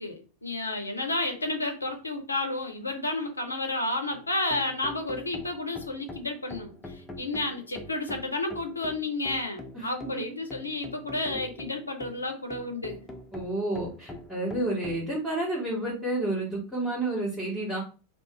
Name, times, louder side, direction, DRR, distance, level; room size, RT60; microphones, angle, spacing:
voice 1, 0.0-13.0, left 2 dB, 80° left, 4 dB, 0.5 m, -31 dB
sound 1, 4.1-15.0, left 1 dB, 10° left, 0.4 m, -44 dB
voice 2, 13.3-17.8, right 1 dB, 5° right, -12 dB, 1.2 m, -30 dB
2.4 x 2.1 x 2.8 m, 0.35 s
figure-of-eight pair, 90°, 0 cm